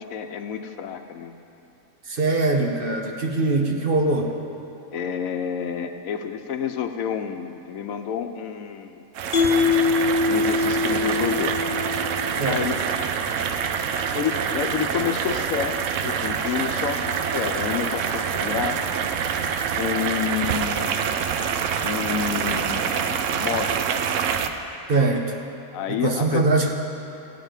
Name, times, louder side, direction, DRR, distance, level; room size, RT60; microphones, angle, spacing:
voice 1, 0.0-1.3 4.9-9.0 10.3-11.6 12.1-12.7 14.1-18.9 19.8-20.9 21.8-23.8 25.7-26.5, left 8 dB, 85° left, 7 dB, 1.1 m, -29 dB
voice 2, 2.0-4.3 12.4-12.6 24.9-25.4 25.9-26.7, right 3 dB, 45° right, 3 dB, 1.0 m, -22 dB
sound 1, 9.1-24.5, right 7 dB, 70° right, 0.9 m, -26 dB
Mallet percussion, 9.3-12.6, left 4 dB, 50° left, 0.8 m, -23 dB
15.0 x 5.1 x 9.0 m, 2.9 s
omnidirectional pair, 1.4 m